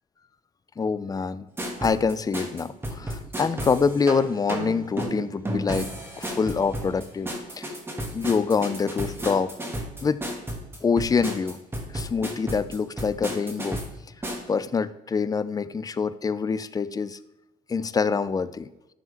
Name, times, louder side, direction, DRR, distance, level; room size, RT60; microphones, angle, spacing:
voice 1, 0.8-1.5 1.8-5.9 6.2-7.7 8.1-9.5 10.0-10.3 10.8-11.6 11.9-13.8 14.5-17.2 17.7-18.7, left 5 dB, 20° left, 15 dB, 0.4 m, -25 dB
sound 1, 1.6-14.5, right 1 dB, 15° right, 1.7 m, -33 dB
11.5 x 6.1 x 3.5 m, 0.97 s
cardioid pair, 110°, 17 cm